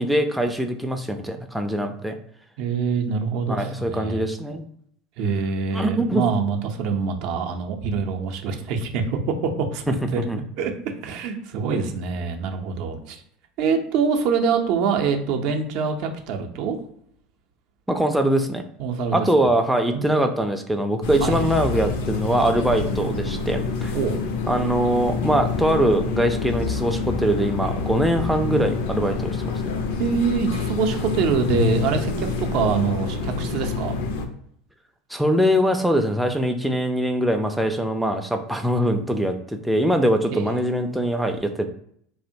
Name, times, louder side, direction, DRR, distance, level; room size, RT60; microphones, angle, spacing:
voice 1, 0.0-2.2 3.5-4.6 5.7-6.2 9.9-10.0 10.3-10.4 17.9-18.6 19.1-24.0 24.5-29.6 35.1-41.7, right 1 dB, 5° right, 5 dB, 0.3 m, -22 dB
voice 2, 2.6-4.3 5.2-10.2 10.6-13.2 13.6-16.8 18.8-19.5 19.9-20.2 21.2-21.4 23.9-24.2 30.0-34.0 40.3-40.5, right 5 dB, 60° right, 5 dB, 0.5 m, -25 dB
sound 1, 21.0-34.3, left 4 dB, 70° left, 0.4 m, -27 dB
2.7 x 2.1 x 2.6 m, 0.68 s
hypercardioid pair, 85°, 0 cm